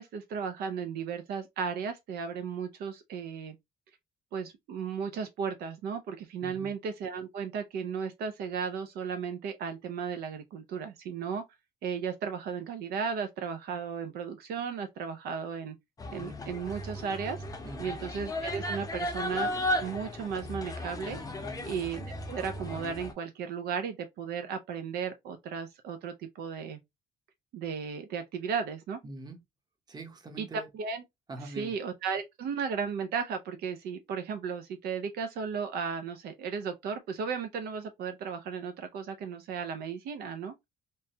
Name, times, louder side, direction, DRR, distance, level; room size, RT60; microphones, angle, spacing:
voice 1, 0.0-3.6 4.3-11.4 11.8-15.8 16.1-17.4 17.8-19.5 19.8-21.2 21.7-26.8 27.5-29.0 30.4-31.0 31.4-40.5, right 6 dB, 70° right, 0.5 m, -35 dB
sound 1, 16.0-23.1, left 1 dB, 20° left, 0.7 m, -35 dB
voice 2, 21.4-21.7 29.0-29.4 29.9-30.7 31.3-31.7, right 2 dB, 25° right, 0.8 m, -43 dB
3.0 x 2.2 x 2.7 m
cardioid pair, 110°, 17 cm